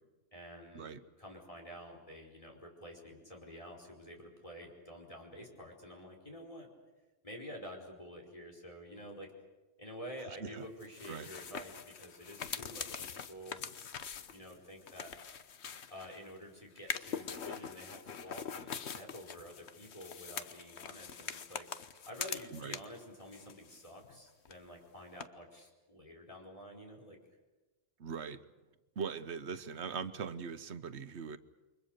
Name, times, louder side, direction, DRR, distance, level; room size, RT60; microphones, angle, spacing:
voice 1, 0.3-6.7 7.2-9.3 9.8-13.6 14.3-15.1 15.9-21.7 22.1-27.2, equal, 30° left, 1 dB, 4.9 m, -49 dB
sound 1, 10.8-16.3 16.8-23.0 23.3-24.2 24.4-24.5 25.2-25.3, left 7 dB, 80° left, 1.3 m, -43 dB
voice 2, 28.0-28.4 29.0-31.4, right 6 dB, 90° right, 12 dB, 1.3 m, -40 dB
29.0 x 24.0 x 6.7 m, 1.2 s
omnidirectional pair, 1.1 m